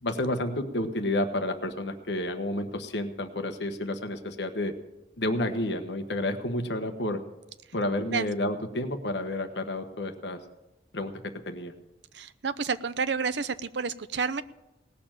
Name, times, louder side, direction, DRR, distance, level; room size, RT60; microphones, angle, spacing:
voice 1, 0.0-4.7 5.2-7.2 7.7-10.4 10.9-11.7, left 1 dB, 80° left, 7 dB, 1.3 m, -30 dB
voice 2, 12.1-14.4, right 5 dB, 85° right, 13 dB, 0.7 m, -30 dB
18.5 x 7.0 x 8.9 m, 0.97 s
head